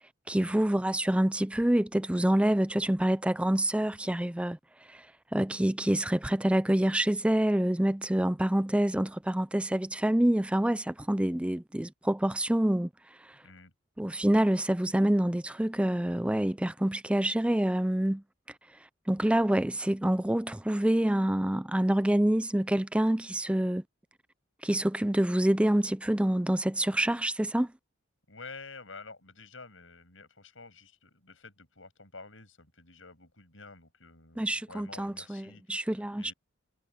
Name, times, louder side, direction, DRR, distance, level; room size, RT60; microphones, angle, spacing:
voice 1, 0.3-4.6 4.9-5.1 5.3-12.9 14.0-18.2 19.1-23.8 24.6-27.7 34.4-36.3, right 1 dB, 5° right, 0.4 m, -27 dB
voice 2, 13.4-13.7 28.3-36.3, left 4 dB, 75° left, 7.4 m, -50 dB
head